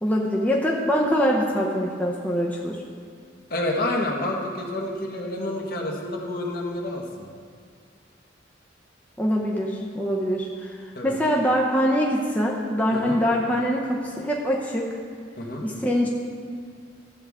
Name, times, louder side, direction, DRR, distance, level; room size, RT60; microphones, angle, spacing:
voice 1, 0.0-2.8 9.2-10.8 11.0-14.9 15.6-16.1, equal, 10° left, -3 dB, 0.7 m, -23 dB
voice 2, 3.5-7.2 10.9-11.2 12.9-13.2 15.4-15.7, left 1 dB, 55° left, -1 dB, 1.4 m, -29 dB
13.0 x 7.8 x 3.6 m, 2.1 s
head